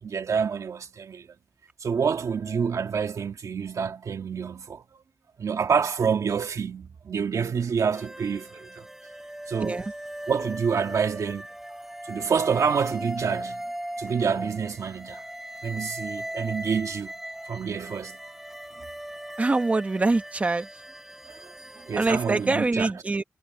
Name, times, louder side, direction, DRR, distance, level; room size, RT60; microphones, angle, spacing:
voice 1, 0.0-1.3 1.8-5.0 5.4-8.9 9.5-9.9 10.3-11.5 12.0-13.6 14.0-15.2 15.6-17.1 17.4-18.2 21.2-22.9, right 6 dB, 85° right, 1.8 m, -28 dB
sound 1, 7.9-22.5, right 1 dB, 5° right, 3.2 m, -39 dB
voice 2, 9.6-9.9 19.4-20.7 21.9-23.2, right 3 dB, 25° right, 0.9 m, -24 dB
wide cardioid pair, 165°, 5 cm